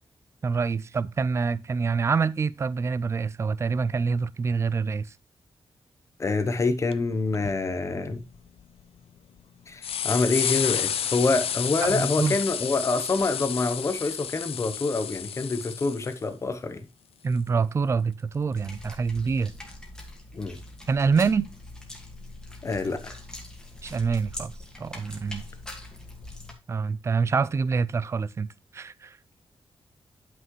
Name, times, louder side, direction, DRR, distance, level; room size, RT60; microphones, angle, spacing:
voice 1, 0.4-5.1 11.8-12.4 17.2-19.5 20.9-21.5 23.8-25.4 26.7-28.5 28.7-29.2, right 5 dB, 30° right, 0.3 m, -26 dB
voice 2, 6.2-8.2 9.7-16.8 20.3-20.6 22.6-23.1, left 3 dB, 30° left, 0.9 m, -26 dB
sound 1, 6.9-7.0 7.3-7.5 8.1-8.8 9.4-9.5 9.8-16.2 18.4-18.5 19.7-19.8, left 9 dB, 80° left, 0.6 m, -31 dB
sound 2, 18.5-26.5, left 1 dB, 5° left, 1.8 m, -42 dB
11.0 x 5.9 x 3.1 m
wide cardioid pair, 175°, 10 cm